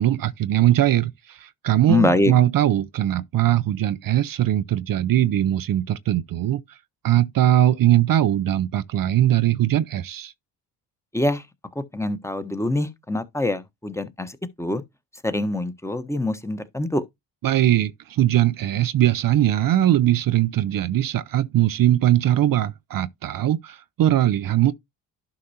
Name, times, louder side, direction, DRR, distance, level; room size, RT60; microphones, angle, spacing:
voice 1, 0.0-6.6 7.0-10.3 17.4-24.7, right 12 dB, 50° right, 0.6 m, -20 dB
voice 2, 1.9-2.3 11.1-11.4 11.7-14.8 15.2-17.0, left 2 dB, 5° left, 1.1 m, -24 dB
11.5 x 5.1 x 2.8 m
supercardioid pair, 55°, 43 cm